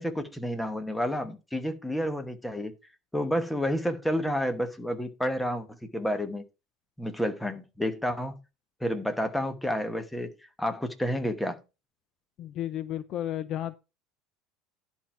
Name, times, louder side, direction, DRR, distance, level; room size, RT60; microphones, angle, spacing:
voice 1, 0.0-2.7 3.1-5.7 5.9-6.4 7.0-8.4 8.8-10.3 10.6-11.6, equal, 5° left, 1.1 m, -30 dB
voice 2, 12.4-13.8, left 12 dB, 40° left, 0.5 m, -33 dB
11.0 x 4.5 x 5.6 m
cardioid pair, 170°, 0 cm